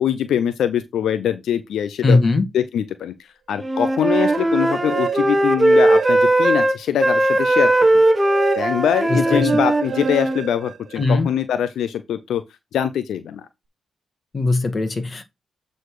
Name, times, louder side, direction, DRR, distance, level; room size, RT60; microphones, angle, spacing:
voice 1, 0.0-2.2 2.5-8.0 8.6-12.4 12.7-13.5, left 9 dB, 85° left, 0.6 m, -23 dB
voice 2, 2.0-2.4 9.1-9.6 11.0-11.3 14.3-15.2, left 3 dB, 40° left, 1.8 m, -19 dB
Wind instrument woodwind instrument, 3.6-10.4, right 1 dB, 20° right, 1.1 m, -18 dB
sound 1, 3.9-6.6 7.0-11.3, right 8 dB, 70° right, 0.6 m, -32 dB
8.0 x 4.1 x 4.8 m
cardioid pair, 80°, 0 cm